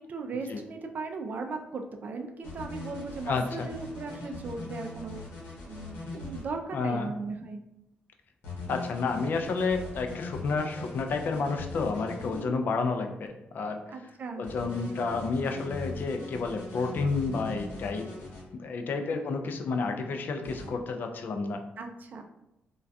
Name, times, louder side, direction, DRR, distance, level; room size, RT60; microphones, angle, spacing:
voice 1, 0.0-5.2 5.7-7.6 12.3-12.6 13.9-14.4 19.0-19.4 21.8-22.2, right 3 dB, 50° right, 4 dB, 0.3 m, -37 dB
sound 1, 2.4-6.4 8.4-12.4 14.4-18.4 20.4-20.7, left 3 dB, 80° left, 0.9 m, -41 dB
voice 2, 3.3-3.7 6.7-7.1 8.7-13.3 13.5-13.8 14.4-18.1 18.6-21.6, left 4 dB, 55° left, 5 dB, 0.3 m, -30 dB
2.2 x 2.2 x 2.5 m, 0.86 s
cardioid pair, 95°, 4 cm